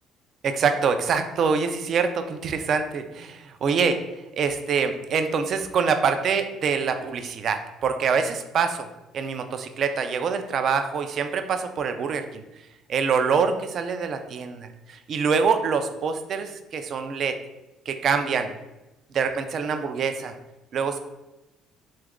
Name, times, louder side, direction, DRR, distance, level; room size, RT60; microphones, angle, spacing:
voice 1, 0.4-4.0 4.4-8.9 9.1-12.4 12.9-17.4 17.9-18.5 19.1-20.3 20.7-21.0, right 5 dB, 55° right, 8 dB, 0.3 m, -25 dB
3.0 x 2.4 x 3.5 m, 0.99 s
cardioid pair, 95°, 0 cm